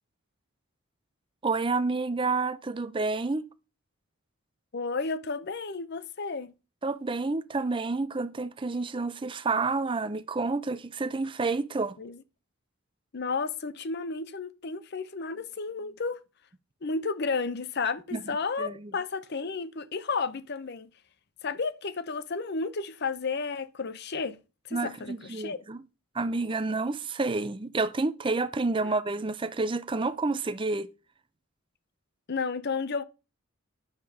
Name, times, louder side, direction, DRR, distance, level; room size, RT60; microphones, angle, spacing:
voice 1, 1.4-3.4 6.8-12.0 18.1-18.2 18.6-18.9 24.7-25.8 26.1-30.9, right 3 dB, 25° right, 0.5 m, -29 dB
voice 2, 4.7-6.5 12.0-12.2 13.1-16.2 16.8-20.9 21.4-24.4 24.7-25.6 28.8-28.9 32.3-33.0, left 4 dB, 50° left, 0.6 m, -32 dB
9.6 x 6.9 x 4.8 m
head